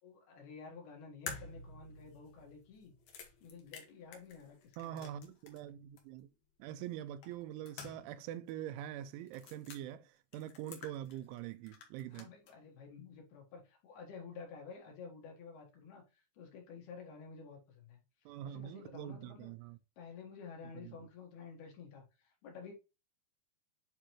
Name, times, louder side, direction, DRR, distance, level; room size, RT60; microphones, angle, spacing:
voice 1, 0.0-2.9 3.4-5.1 12.1-19.5 20.0-22.7, left 5 dB, 65° left, 3.3 m, -51 dB
sound 1, 1.3-5.7 6.0-6.1 7.2-8.2 8.5-8.6 9.3-9.8 10.3-11.4 11.7-12.5, left 5 dB, 85° left, 1.6 m, -50 dB
voice 2, 4.8-6.3 6.6-12.3 18.3-19.8 20.7-21.0, right 11 dB, 90° right, 3.1 m, -44 dB
9.0 x 3.8 x 3.0 m
omnidirectional pair, 5.3 m